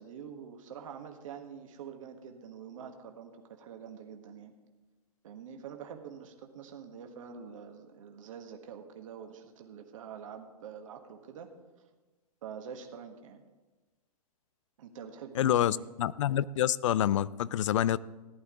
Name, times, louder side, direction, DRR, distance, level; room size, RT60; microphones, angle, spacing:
voice 1, 0.0-4.5 5.2-11.5 12.4-13.4 14.8-15.9, right 7 dB, 55° right, 4 dB, 1.5 m, -46 dB
voice 2, 15.4-18.0, left 11 dB, 50° left, 20 dB, 0.4 m, -27 dB
15.0 x 11.0 x 3.7 m, 1.2 s
figure-of-eight pair, 115°, 20 cm